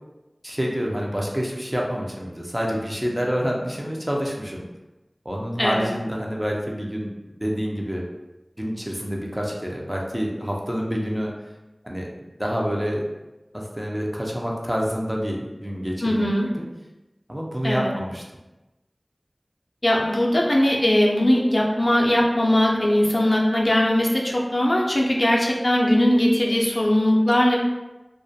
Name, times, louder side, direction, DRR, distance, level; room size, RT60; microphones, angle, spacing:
voice 1, 0.4-4.6 5.3-7.1 7.4-8.0 8.6-11.3 11.8-12.1 12.4-13.0 13.5-16.3 16.6-16.7 17.3-18.2, equal, 15° right, -2 dB, 0.4 m, -27 dB
voice 2, 5.6-5.9 16.0-16.5 17.6-17.9 19.8-27.6, left 1 dB, 50° left, -2 dB, 0.4 m, -20 dB
2.3 x 2.1 x 2.6 m, 1.0 s
wide cardioid pair, 40°, 0 cm